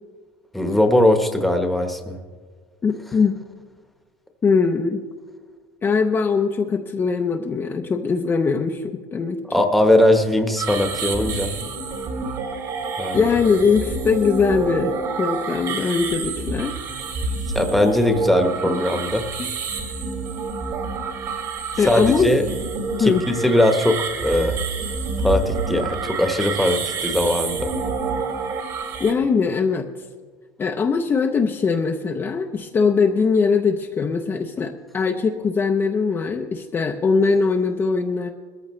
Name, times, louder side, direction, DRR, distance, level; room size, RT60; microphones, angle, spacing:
voice 1, 0.5-2.2 9.5-11.5 13.0-13.3 17.5-19.2 21.9-22.4 23.0-24.6 25.2-27.7, left 1 dB, ahead, 5 dB, 1.1 m, -20 dB
voice 2, 2.8-3.4 4.4-5.0 5.8-9.4 13.1-16.8 18.6-19.0 19.4-19.5 21.8-22.3 23.0-23.2 29.0-29.9 30.6-38.3, left 5 dB, 20° left, 3 dB, 0.6 m, -21 dB
sound 1, 10.6-29.1, right 4 dB, 40° right, 2.2 m, -28 dB
20.5 x 14.0 x 3.1 m, 1.5 s
cardioid pair, 150°, 10 cm